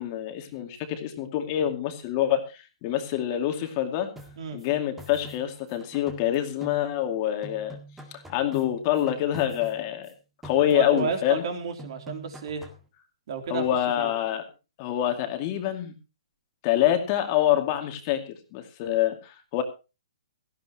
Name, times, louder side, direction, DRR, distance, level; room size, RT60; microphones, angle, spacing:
voice 1, 0.0-4.1 4.5-7.8 8.1-10.1 10.4-11.4 13.5-14.4 14.8-15.9 16.6-19.6, left 12 dB, 30° left, 5 dB, 2.4 m, -26 dB
sound 1, 4.2-7.2 7.4-10.1 10.4-11.5 11.8-12.9, right 1 dB, 5° right, 2.0 m, -46 dB
voice 2, 10.7-12.6 13.3-13.7 14.0-14.1, right 5 dB, 50° right, 6 dB, 3.4 m, -31 dB
17.5 x 14.0 x 3.0 m, 0.30 s
hypercardioid pair, 155°, 3 cm